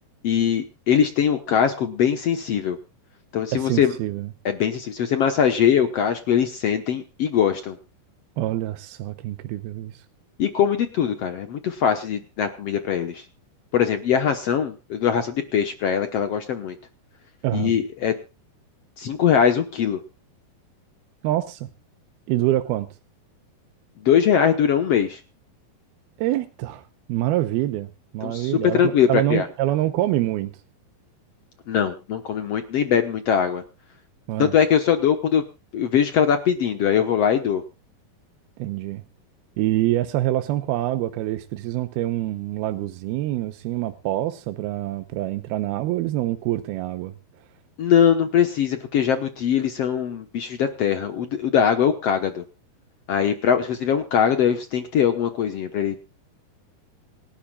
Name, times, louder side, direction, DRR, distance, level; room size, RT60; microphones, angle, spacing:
voice 1, 0.2-2.8 3.3-3.9 4.4-7.8 10.4-13.2 13.7-16.7 17.5-18.1 19.0-20.0 24.0-25.2 28.2-28.5 28.8-29.5 31.7-33.6 34.4-35.4 35.7-37.6 47.8-52.4 53.1-56.0, left 8 dB, 70° left, 1.5 m, -21 dB
voice 2, 3.5-4.3 8.4-10.0 17.4-17.8 21.2-21.7 22.3-22.9 26.2-26.8 27.1-27.9 28.1-30.5 34.3-34.5 38.6-39.0 39.6-47.1, right 15 dB, 80° right, 2.7 m, -25 dB
27.0 x 12.0 x 2.4 m
omnidirectional pair, 4.5 m